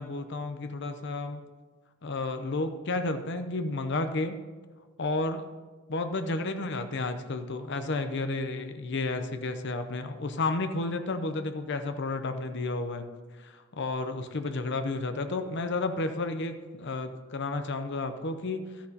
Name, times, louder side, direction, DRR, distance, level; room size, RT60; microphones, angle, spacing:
voice 1, 0.0-1.4 2.0-4.4 5.0-5.5 5.9-13.1 13.4-18.7, left 2 dB, 55° left, 8 dB, 0.7 m, -32 dB
13.5 x 10.0 x 2.9 m, 1.4 s
head